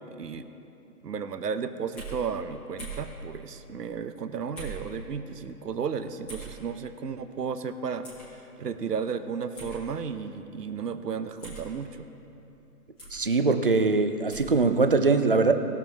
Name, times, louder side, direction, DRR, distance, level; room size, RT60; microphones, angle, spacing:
voice 1, 0.1-0.5 1.0-12.1, right 6 dB, 90° right, 10 dB, 0.9 m, -34 dB
sound 1, 2.0-2.2 2.8-3.1 4.6-4.9 6.3-6.5 8.0-8.3 9.6-9.8 11.4-11.7 13.0-13.2 14.3-14.6, right 4 dB, ahead, 1.0 m, -40 dB
voice 2, 13.1-15.5, right 3 dB, 40° right, 8 dB, 0.4 m, -22 dB
20.0 x 7.0 x 3.5 m, 3.0 s
hypercardioid pair, 165°, 47 cm